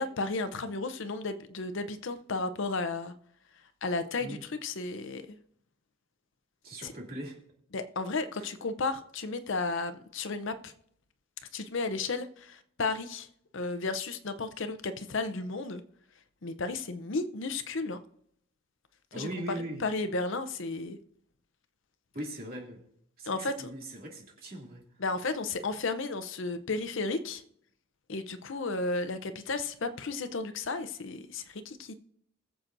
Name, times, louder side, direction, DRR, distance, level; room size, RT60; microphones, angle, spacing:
voice 1, 0.0-3.1 3.8-5.2 6.8-6.9 7.7-10.7 11.5-13.3 13.5-15.8 16.4-18.0 19.2-21.0 23.3-23.7 25.0-27.4 28.1-31.9, left 3 dB, 60° left, 10 dB, 0.7 m, -33 dB
voice 2, 6.6-7.4 8.4-8.5 19.1-19.8 22.1-22.8 23.2-24.8, right 1 dB, 45° right, -1 dB, 2.5 m, -40 dB
21.0 x 7.5 x 2.6 m, 0.69 s
head